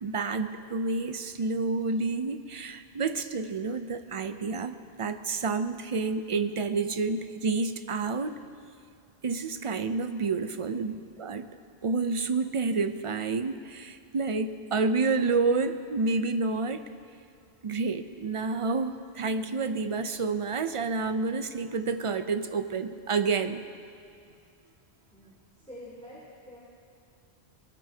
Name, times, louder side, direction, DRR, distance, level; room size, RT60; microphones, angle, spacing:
voice 1, 0.0-8.3 9.2-11.5 11.8-16.8 17.6-23.6, right 4 dB, 45° right, 9 dB, 0.5 m, -29 dB
voice 2, 25.1-26.6, left 1 dB, 5° left, -10 dB, 3.0 m, -47 dB
21.5 x 13.5 x 2.8 m, 2.5 s
omnidirectional pair, 1.1 m